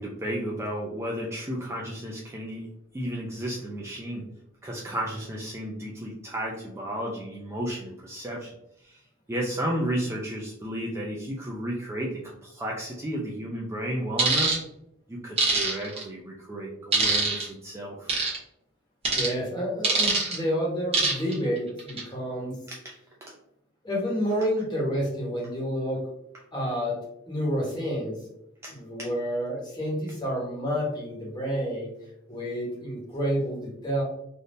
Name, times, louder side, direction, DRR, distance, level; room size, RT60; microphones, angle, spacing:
voice 1, 0.0-2.7 2.9-4.3 4.6-8.5 8.8-9.0 9.3-14.5 15.1-18.2 22.7-23.3 28.6-29.1, right 1 dB, 15° right, -3 dB, 0.4 m, -33 dB
sound 1, 14.2-14.6 15.4-16.0 16.9-17.5 18.1-18.4 19.1-19.3 19.8-20.4 20.9-21.3 21.8-22.0, right 3 dB, 30° right, 1.0 m, -23 dB
voice 2, 19.1-22.6 23.8-26.0 26.5-27.0 27.3-28.2 28.7-31.9 32.3-34.0, equal, 20° left, -4 dB, 1.1 m, -29 dB
3.5 x 2.6 x 2.6 m, 0.80 s
head